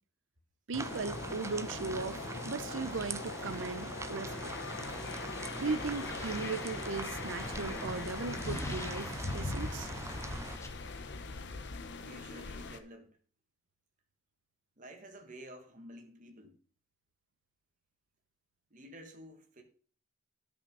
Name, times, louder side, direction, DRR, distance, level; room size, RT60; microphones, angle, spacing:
sound 1, 0.7-10.6, right 3 dB, 15° right, 0.4 m, -43 dB
voice 1, 0.7-2.2 2.4-4.5 5.6-9.9, right 4 dB, 65° right, 0.7 m, -37 dB
sound 2, 0.8-12.8, left 3 dB, 55° left, 0.8 m, -41 dB
sound 3, 5.6-10.7, left 2 dB, 15° left, 1.0 m, -48 dB
voice 2, 12.0-13.2 14.8-16.6 18.7-19.6, equal, 40° right, 1.6 m, -51 dB
10.5 x 5.8 x 5.4 m
head